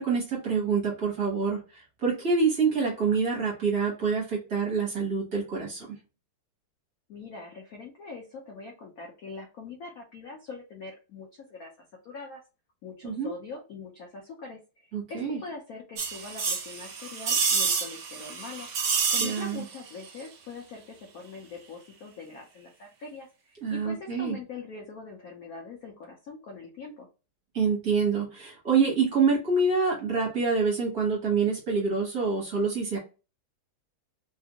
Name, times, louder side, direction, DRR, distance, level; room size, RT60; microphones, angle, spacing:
voice 1, 0.0-1.6 2.0-5.9 13.0-13.3 14.9-15.4 19.2-19.6 23.6-24.4 27.5-33.0, right 5 dB, 50° right, -3 dB, 1.6 m, -26 dB
voice 2, 7.1-11.7 12.0-12.4 12.8-18.7 19.1-27.1, left 4 dB, 75° left, 1 dB, 0.8 m, -43 dB
sound 1, 16.0-19.8 20.0-20.1, right 5 dB, 75° right, 0.8 m, -28 dB
3.5 x 2.4 x 2.8 m, 0.32 s
omnidirectional pair, 2.3 m